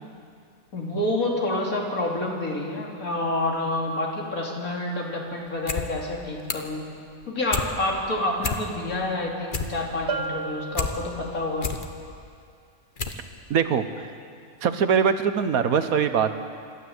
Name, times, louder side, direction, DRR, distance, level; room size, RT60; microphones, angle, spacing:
voice 1, 0.7-6.8 7.3-11.7, left 1 dB, 75° left, -1 dB, 3.4 m, -28 dB
sound 1, 5.5-5.9 6.1-6.8 7.1-7.7 8.1-8.2 8.4-9.0 9.3-10.9 11.3-11.9 12.4-12.5 13.0-13.2 13.5-13.6, left 5 dB, 40° left, 1.2 m, -30 dB
Bell, 10.1-11.7, right 4 dB, 50° right, 1.2 m, -33 dB
voice 2, 13.5-14.1 14.6-16.4, right 7 dB, 80° right, 9 dB, 1.5 m, -22 dB
26.5 x 12.5 x 7.9 m, 2.2 s
omnidirectional pair, 1.5 m